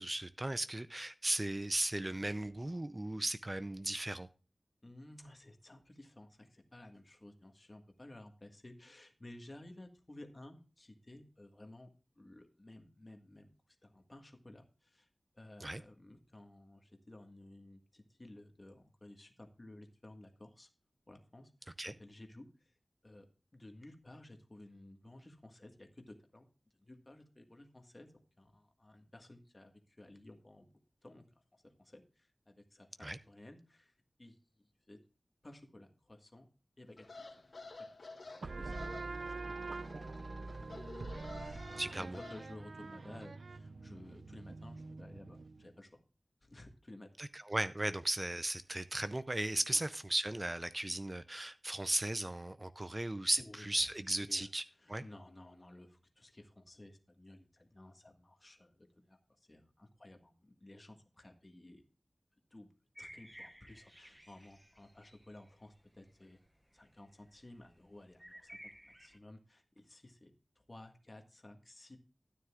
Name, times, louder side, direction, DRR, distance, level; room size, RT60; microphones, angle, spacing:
voice 1, 0.0-4.3 15.6-15.8 21.8-21.9 33.0-33.2 41.8-42.2 47.2-54.6 54.9-55.0, right 1 dB, 30° right, 0.4 m, -36 dB
voice 2, 4.8-11.9 12.2-13.5 13.8-15.1 15.3-20.7 21.1-22.7 23.0-23.3 23.5-26.4 26.8-28.1 28.4-30.7 31.0-31.2 31.8-33.9 34.2-35.0 35.4-36.5 36.8-37.4 38.0-38.1 38.4-39.5 39.9-40.4 40.7-40.8 41.3-46.0 46.4-47.1 49.7-49.8 53.4-53.9 54.3-54.5 54.8-59.2 59.5-61.8 62.5-62.7 63.0-66.4 66.7-68.6 68.8-72.0, left 1 dB, 35° left, 1.6 m, -55 dB
sound 1, 37.0-42.4, left 3 dB, 80° left, 2.7 m, -51 dB
sound 2, 38.4-45.7, right 3 dB, 90° right, 0.4 m, -45 dB
sound 3, 63.0-66.5 66.7-69.2, equal, 5° right, 0.9 m, -55 dB
13.0 x 9.5 x 2.4 m
wide cardioid pair, 70°, 0 cm